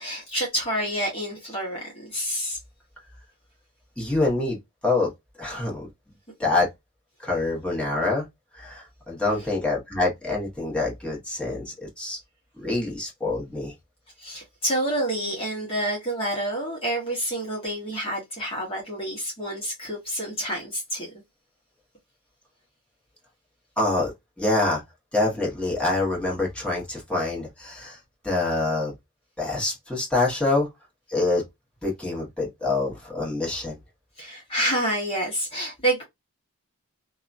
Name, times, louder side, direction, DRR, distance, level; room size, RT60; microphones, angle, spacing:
voice 1, 0.0-2.6 14.2-21.1 34.2-36.0, right 1 dB, 25° left, 1.0 m, -28 dB
voice 2, 4.0-4.6 4.8-5.1 5.4-5.9 6.4-6.7 7.2-8.2 8.5-12.2 12.6-13.7 23.8-24.8 25.1-28.9 29.4-30.7 31.1-31.4 31.8-33.8, left 2 dB, 5° left, 1.3 m, -26 dB
2.7 x 2.3 x 2.5 m
head